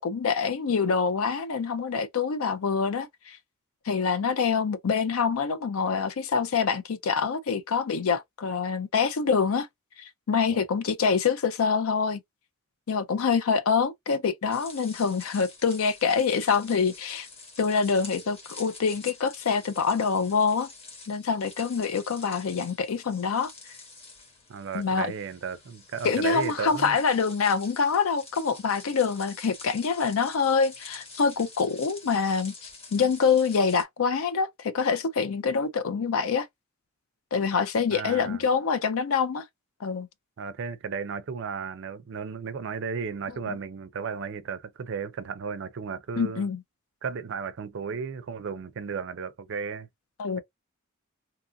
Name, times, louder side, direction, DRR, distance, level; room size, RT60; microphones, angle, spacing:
voice 1, 0.0-3.4 3.9-9.7 10.0-12.2 12.9-17.3 17.6-20.7 21.1-23.5 24.7-25.1 26.0-36.5 37.3-39.4 39.8-40.1 43.5-43.6 46.2-46.6 50.2-50.4, left 5 dB, 80° left, 0.5 m, -25 dB
sound 1, 14.5-33.8, left 3 dB, 30° left, 1.1 m, -47 dB
voice 2, 24.5-27.0 37.9-38.4 40.4-46.5 47.0-49.9, right 5 dB, 60° right, 0.4 m, -34 dB
2.8 x 2.4 x 2.5 m
head